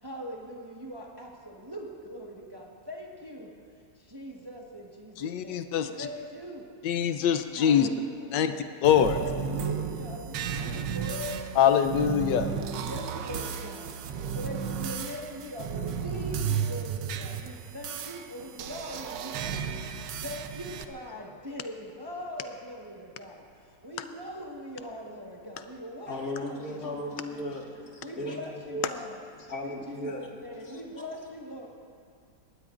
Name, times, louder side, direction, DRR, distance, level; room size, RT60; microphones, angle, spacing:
voice 1, 0.0-3.5 3.9-6.7 7.5-8.6 9.1-12.3 12.7-14.0 14.3-27.4 28.0-29.2 29.6-31.7, equal, 15° right, -1 dB, 1.0 m, -41 dB
voice 2, 5.2-5.9 6.8-7.9 8.3-8.5 8.8-9.1 11.6-12.5, left 9 dB, 85° left, 9 dB, 1.3 m, -23 dB
sound 1, 8.8-20.8, right 7 dB, 85° right, 1.4 m, -34 dB
voice 3, 26.1-28.4 28.7-28.9 29.3-30.3 30.7-30.8, left 1 dB, 55° left, -1 dB, 2.2 m, -36 dB
21.5 x 18.5 x 2.5 m, 2.3 s
omnidirectional pair, 1.9 m